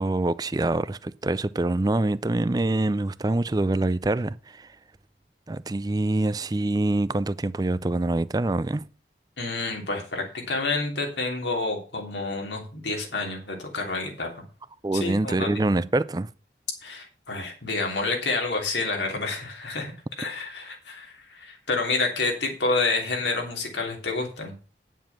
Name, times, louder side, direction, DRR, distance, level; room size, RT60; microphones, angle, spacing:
voice 1, 0.0-4.7 5.5-8.8 14.8-16.3, right 2 dB, 20° right, 0.4 m, -25 dB
voice 2, 9.4-14.4 14.9-15.8 16.8-19.9 20.2-24.5, left 3 dB, 90° left, 3.3 m, -29 dB
9.5 x 7.3 x 6.0 m
head